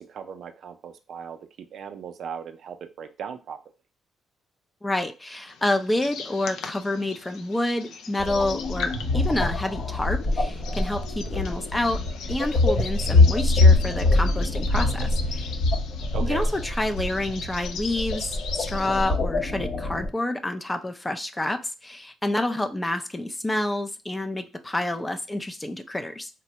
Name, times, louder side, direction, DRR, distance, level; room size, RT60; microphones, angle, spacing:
voice 1, 0.0-1.4 1.7-3.6 16.1-16.5, right 7 dB, 65° right, 7 dB, 0.4 m, -37 dB
voice 2, 4.8-12.0 12.3-15.6 16.2-26.3, left 1 dB, 15° left, 8 dB, 0.4 m, -28 dB
sound 1, 5.5-19.2, left 6 dB, 85° left, 0.3 m, -39 dB
sound 2, 8.2-20.1, left 2 dB, 55° left, 0.7 m, -24 dB
3.2 x 2.1 x 2.8 m, 0.31 s
cardioid pair, 90°, 0 cm